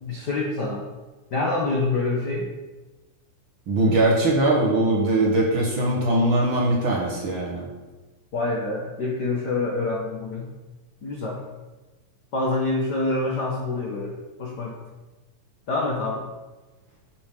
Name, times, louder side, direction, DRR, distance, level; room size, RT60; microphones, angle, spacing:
voice 1, 0.0-0.8 1.3-2.5 8.3-10.5 11.0-11.4 12.3-14.8 15.7-16.3, left 2 dB, 80° left, -1 dB, 0.9 m, -26 dB
voice 2, 3.7-7.7, right 1 dB, 50° right, -2 dB, 1.8 m, -21 dB
9.7 x 7.7 x 3.8 m, 1.2 s
omnidirectional pair, 3.6 m